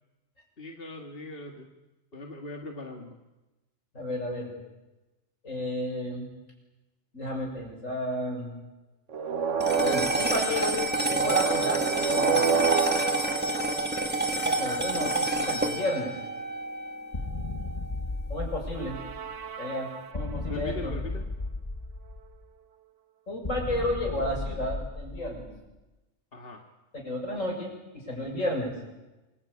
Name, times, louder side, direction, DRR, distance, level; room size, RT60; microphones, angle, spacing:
voice 1, 0.6-1.7 2.1-3.2 15.0-15.6 20.5-21.3 26.3-26.6, left 2 dB, 45° left, 1 dB, 2.3 m, -40 dB
voice 2, 3.9-4.5 5.4-6.3 7.1-8.5 9.8-12.6 14.4-16.1 18.3-19.0 19.6-20.9 23.3-25.5 26.9-28.7, left 1 dB, 75° left, 1 dB, 7.3 m, -32 dB
sound 1, 9.1-14.4 18.7-20.4, right 6 dB, 70° right, 1.5 m, -30 dB
sound 2, 9.6-18.1, right 2 dB, 10° right, 2.0 m, -28 dB
sound 3, 17.1-19.4 20.1-22.4 23.4-25.7, left 2 dB, 25° left, 1.3 m, -35 dB
27.0 x 22.5 x 8.7 m, 1.1 s
omnidirectional pair, 1.3 m